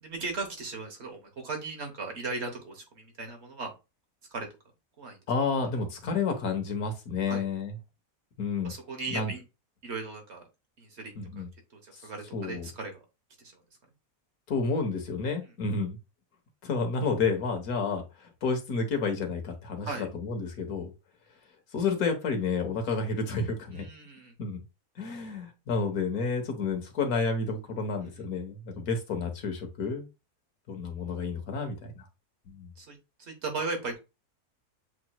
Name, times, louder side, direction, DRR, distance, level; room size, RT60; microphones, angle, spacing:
voice 1, 0.0-3.7 4.3-4.5 5.0-5.2 7.3-7.4 8.6-9.4 9.8-10.4 10.8-11.4 11.8-13.0 19.8-20.1 23.7-24.3 32.8-34.0, right 3 dB, 50° right, 4 dB, 1.3 m, -37 dB
voice 2, 5.3-7.8 8.4-8.7 9.1-9.3 11.1-11.5 11.9-12.1 12.3-12.7 14.5-16.0 16.6-20.9 21.7-23.9 24.4-24.6 25.0-30.1 30.7-32.1 32.5-32.7, left 4 dB, 80° left, 5 dB, 1.6 m, -30 dB
7.6 x 3.0 x 2.2 m, 0.27 s
omnidirectional pair, 1.5 m